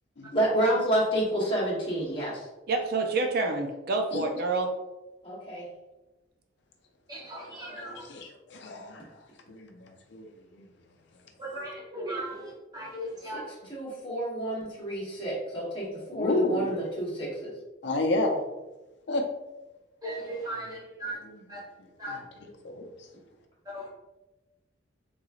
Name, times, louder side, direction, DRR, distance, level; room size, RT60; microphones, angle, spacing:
voice 1, 0.3-2.4 5.2-5.7 13.2-17.5, right 1 dB, 25° left, -7 dB, 1.1 m, -29 dB
voice 2, 2.7-4.7, right 3 dB, 50° right, 4 dB, 0.4 m, -27 dB
voice 3, 7.1-8.0 11.4-12.5 12.7-13.4 20.0-21.2 21.5-21.6 22.0-22.2 23.7-23.8, right 1 dB, 20° right, -4 dB, 0.8 m, -37 dB
voice 4, 8.6-9.1 9.5-10.3 10.5-10.7 16.1-16.8 17.8-18.4 19.1-19.3 21.2-21.6 22.1-22.9, left 1 dB, 65° left, 3 dB, 0.5 m, -30 dB
3.7 x 3.0 x 2.4 m, 1.0 s
head